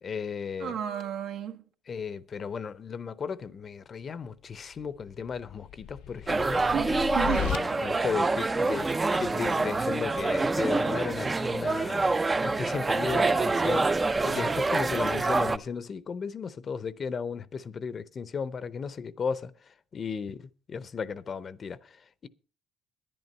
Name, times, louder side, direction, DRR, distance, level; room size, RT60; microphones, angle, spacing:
voice 1, 0.0-0.8 1.9-6.6 7.3-8.9 9.2-12.1 12.4-13.9 14.2-22.3, left 6 dB, 40° left, 0.7 m, -35 dB
voice 2, 0.6-1.6 6.7-7.9, right 8 dB, 80° right, 1.4 m, -33 dB
sound 1, 4.8-7.6, left 10 dB, 90° left, 0.6 m, -36 dB
sound 2, 6.3-15.6, right 3 dB, 20° right, 0.5 m, -26 dB
11.0 x 10.5 x 5.4 m
cardioid pair, 115°, 0 cm